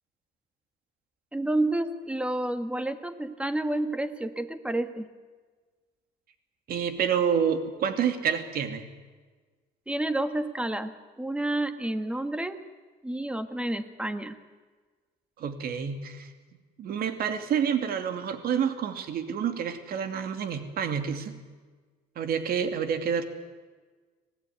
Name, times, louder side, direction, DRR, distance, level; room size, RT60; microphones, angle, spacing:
voice 1, 1.3-5.1 9.9-12.6 13.0-14.4, right 1 dB, 5° right, 10 dB, 1.7 m, -30 dB
voice 2, 6.7-8.8 15.4-16.3 16.8-21.3 22.2-23.3, right 7 dB, 60° right, 8 dB, 2.7 m, -28 dB
26.0 x 17.5 x 9.4 m, 1.4 s
cardioid pair, 110°, 17 cm